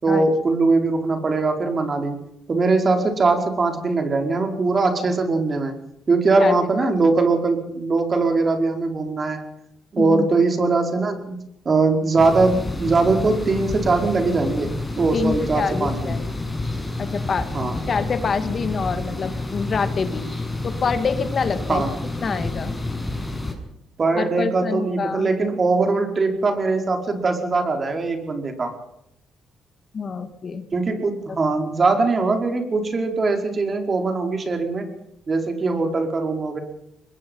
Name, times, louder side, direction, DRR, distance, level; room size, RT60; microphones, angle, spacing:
voice 1, 0.0-2.2 2.5-5.8 6.1-9.4 9.9-16.1 17.5-17.8 21.7-21.9 24.0-28.7 30.7-34.9 35.3-36.6, right 3 dB, 40° right, 4 dB, 5.1 m, -21 dB
voice 2, 6.4-6.9 10.0-10.3 15.1-16.3 17.0-17.5 17.9-20.2 20.6-21.8 22.2-22.7 24.1-25.3 29.9-30.6 31.3-31.4, left 5 dB, 45° left, 9 dB, 2.2 m, -26 dB
sound 1, 12.2-23.5, left 2 dB, 10° left, 6.6 m, -29 dB
23.5 x 21.5 x 5.6 m, 0.80 s
cardioid pair, 90°, 0 cm